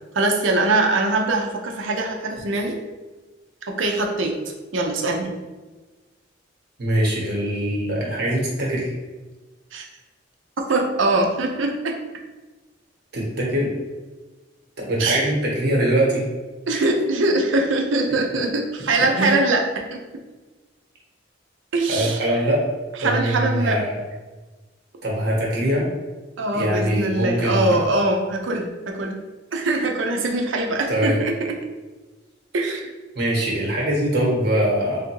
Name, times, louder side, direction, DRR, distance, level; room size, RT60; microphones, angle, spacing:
voice 1, 0.1-2.8 3.6-4.3 4.7-5.3 9.7-9.9 10.7-12.0 15.0-15.2 16.7-20.0 21.7-22.2 23.0-23.8 26.4-29.2 29.5-31.3 32.5-32.9, right 2 dB, 80° right, 2 dB, 0.6 m, -22 dB
voice 2, 6.8-8.9 13.1-13.7 14.8-16.2 16.7-16.8 19.2-19.3 21.9-22.6 23.0-24.0 25.0-25.8 26.5-27.8 30.9-31.2 33.1-35.0, right 1 dB, 55° right, -3 dB, 1.2 m, -22 dB
3.4 x 2.5 x 4.5 m, 1.2 s
head